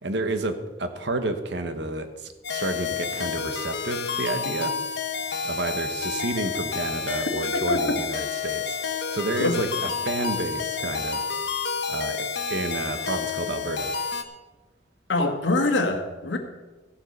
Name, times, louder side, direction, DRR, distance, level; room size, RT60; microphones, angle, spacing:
voice 1, 0.0-4.8 5.4-8.8 9.1-11.2 11.9-13.9, right 2 dB, 70° right, 8 dB, 1.2 m, -30 dB
sound 1, 2.4-14.2, left 5 dB, 65° left, 1.1 m, -30 dB
voice 2, 7.7-8.0 9.4-9.6 15.1-16.4, left 2 dB, 90° left, 4 dB, 1.7 m, -23 dB
14.5 x 7.3 x 6.6 m, 1.2 s
head